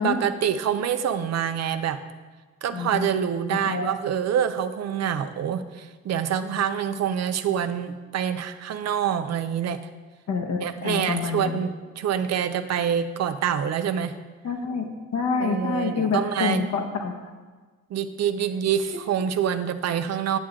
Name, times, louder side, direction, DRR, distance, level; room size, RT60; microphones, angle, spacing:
voice 1, 0.0-2.0 2.6-9.8 10.6-14.2 15.4-16.6 17.9-20.4, right 8 dB, 60° right, 10 dB, 0.7 m, -26 dB
voice 2, 2.7-3.1 3.7-3.9 10.3-11.6 14.4-14.9 15.1-17.2, left 5 dB, 60° left, 3 dB, 1.2 m, -27 dB
10.0 x 7.5 x 3.7 m, 1.4 s
cardioid pair, 90°, 30 cm